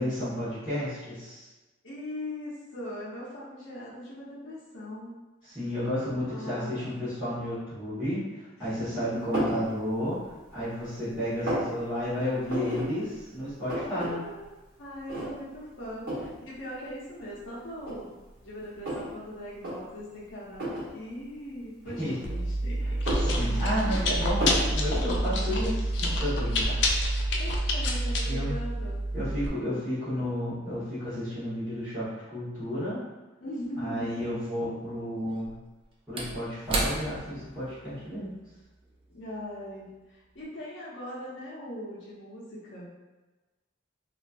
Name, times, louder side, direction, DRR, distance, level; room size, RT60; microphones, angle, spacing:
voice 1, 0.0-1.5 5.5-10.2 10.5-14.2 22.0-22.2 22.8-22.9 23.2-26.8 28.2-28.5 29.1-33.0 33.8-35.6 36.1-38.3, equal, 5° right, -18 dB, 1.4 m, -32 dB
voice 2, 1.8-5.1 6.2-6.8 8.6-9.2 13.8-14.5 14.8-23.0 23.8-24.2 24.6-25.7 27.4-29.0 33.4-34.2 39.1-42.9, left 1 dB, 80° left, -6 dB, 0.8 m, -40 dB
sound 1, 9.3-9.6 10.2-10.8 11.1-11.7 12.5-12.9 13.2-13.3 13.5-14.1 14.4-14.5 15.1-15.5 16.1-16.3 17.2-17.3 17.8-19.1 19.5-19.7 20.5-20.9 21.9-22.5 22.9-23.9 24.4-24.7, right 1 dB, 50° right, 1.1 m, -31 dB
Chewing mastication, 22.2-29.5, equal, 65° left, 0.4 m, -27 dB
Slam / Wood, 33.7-33.8 35.3-40.0 40.3-40.4, right 1 dB, 30° right, 0.4 m, -36 dB
3.1 x 2.5 x 2.6 m, 1.2 s
head